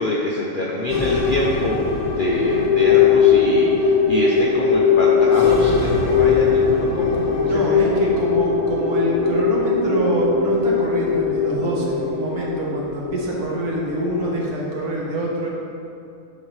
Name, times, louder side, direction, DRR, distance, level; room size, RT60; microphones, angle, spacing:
voice 1, 0.0-1.8 2.1-7.9, left 1 dB, 60° left, -4 dB, 0.5 m, -25 dB
sound 1, 0.9-14.5, left 5 dB, 30° left, 0.8 m, -19 dB
voice 2, 7.5-15.5, right 1 dB, 75° right, -4 dB, 1.6 m, -25 dB
10.5 x 3.8 x 3.2 m, 2.5 s
omnidirectional pair, 1.6 m